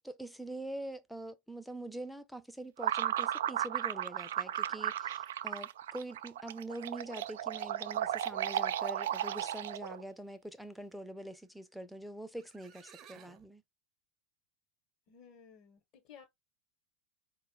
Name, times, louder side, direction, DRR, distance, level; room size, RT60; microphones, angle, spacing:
voice 1, 0.0-13.6, right 1 dB, ahead, 0.6 m, -44 dB
sound 1, 2.8-10.0, right 11 dB, 70° right, 0.3 m, -35 dB
sound 2, 12.0-12.1 12.4-13.5, right 8 dB, 40° right, 0.8 m, -56 dB
voice 2, 15.1-16.3, left 7 dB, 50° left, 1.2 m, -56 dB
4.3 x 2.3 x 4.6 m
hypercardioid pair, 85°, 0 cm